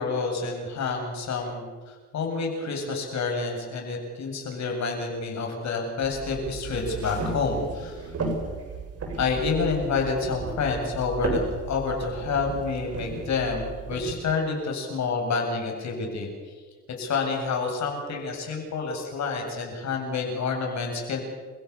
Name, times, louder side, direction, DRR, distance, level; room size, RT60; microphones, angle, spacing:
voice 1, 0.0-8.1 9.2-16.5 17.0-21.2, left 4 dB, 65° left, 2 dB, 7.9 m, -28 dB
sound 1, 6.0-14.1, right 3 dB, 55° right, 7.1 m, -34 dB
29.5 x 16.5 x 7.4 m, 1.5 s
cardioid pair, 90°, 30 cm